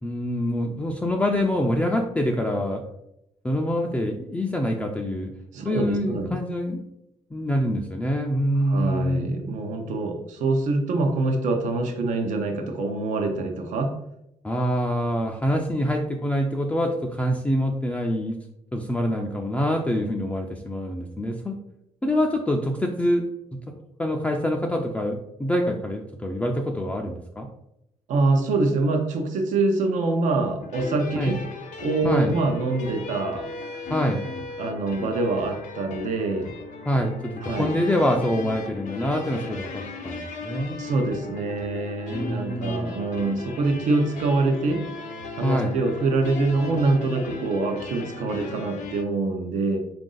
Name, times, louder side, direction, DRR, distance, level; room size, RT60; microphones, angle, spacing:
voice 1, 0.0-2.8 3.4-5.3 5.6-6.8 7.3-9.3 14.4-18.4 18.7-21.6 22.0-23.2 24.0-27.5 31.2-31.4 32.0-32.3 33.9-34.3 36.9-40.8 42.1-42.9 45.4-45.7, equal, 10° left, 0 dB, 0.4 m, -25 dB
voice 2, 5.5-6.4 8.6-13.9 28.1-31.4 31.8-33.5 34.6-36.5 37.4-37.7 40.8-44.8 45.3-49.8, right 3 dB, 80° right, 4 dB, 0.7 m, -25 dB
sound 1, 30.6-49.0, left 4 dB, 75° left, 0.7 m, -37 dB
4.0 x 2.6 x 3.8 m, 0.80 s
cardioid pair, 105°, 13 cm